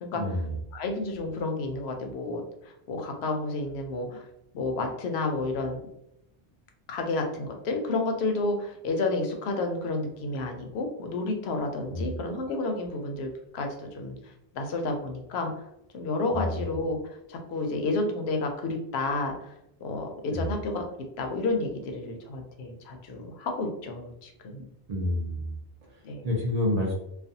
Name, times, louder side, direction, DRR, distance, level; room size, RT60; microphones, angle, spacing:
voice 1, 0.1-0.6 11.9-12.1 16.3-16.6 20.3-20.5 24.9-25.6 25.8-26.9, left 1 dB, 50° right, -1 dB, 0.6 m, -29 dB
voice 2, 0.7-4.3 4.5-5.8 6.9-14.2 14.5-15.5 15.9-19.5 19.8-20.8 21.2-24.7 26.0-26.2, left 2 dB, 80° left, 4 dB, 0.8 m, -31 dB
2.4 x 2.3 x 2.6 m, 0.81 s
omnidirectional pair, 1.1 m